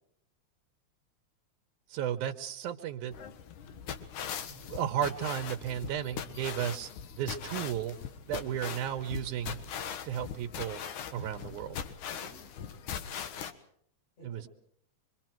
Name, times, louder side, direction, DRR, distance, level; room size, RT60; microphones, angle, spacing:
voice 1, 1.9-3.1 4.4-6.9 7.2-8.0 8.3-9.6 10.0-10.8 11.1-11.8 14.2-14.5, right 10 dB, 85° right, 6 dB, 2.5 m, -34 dB
sound 1, 3.1-13.5, left 8 dB, 85° left, 2.9 m, -40 dB
voice 2, 8.3-8.7 12.1-13.2 14.2-14.5, left 1 dB, 55° left, 2 dB, 7.9 m, -57 dB
26.0 x 24.0 x 4.5 m, 0.68 s
omnidirectional pair, 3.4 m